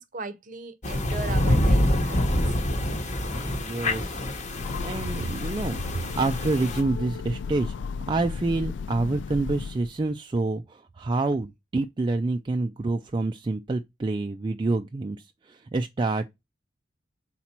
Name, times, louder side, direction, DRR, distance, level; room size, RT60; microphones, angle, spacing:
voice 1, 0.0-2.2, right 3 dB, 45° right, 0.7 m, -37 dB
sound 1, 0.8-6.8, left 1 dB, 40° left, 1.0 m, -26 dB
voice 2, 3.4-4.2 4.5-7.7 8.1-15.2 15.5-16.3, right 2 dB, 25° right, 0.3 m, -27 dB
Train, 4.3-10.0, left 5 dB, 75° left, 0.3 m, -35 dB
5.9 x 4.0 x 4.3 m
head